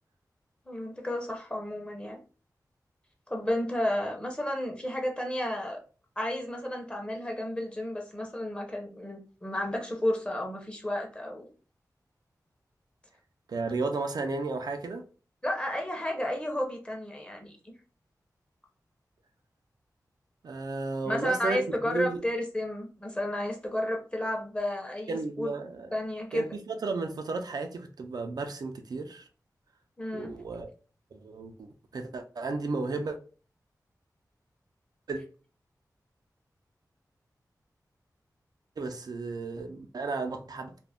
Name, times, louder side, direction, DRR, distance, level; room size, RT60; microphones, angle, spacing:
voice 1, 0.7-2.2 3.3-5.8 6.2-11.5 15.4-17.5 21.1-25.5 25.9-26.5 30.0-30.3, left 1 dB, 15° left, 0.7 m, -32 dB
voice 2, 13.5-15.1 20.4-22.2 25.1-25.9 26.3-29.3 30.1-30.7 31.1-33.2 35.1-35.2 38.8-40.7, right 3 dB, 70° right, 0.4 m, -33 dB
2.4 x 2.1 x 3.4 m
wide cardioid pair, 75°, 7 cm